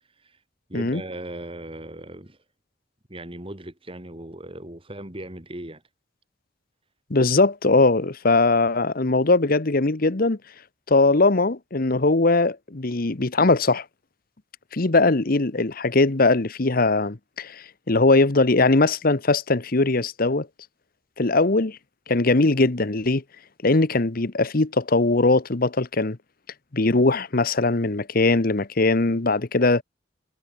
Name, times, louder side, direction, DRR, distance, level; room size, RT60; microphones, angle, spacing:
voice 1, 0.7-2.4 3.1-5.8, right 1 dB, 30° right, 3.7 m, -38 dB
voice 2, 7.1-10.4 10.9-13.8 14.7-20.5 21.2-21.8 22.1-23.2 23.6-26.2 26.7-29.8, left 3 dB, 50° left, 1.1 m, -20 dB
head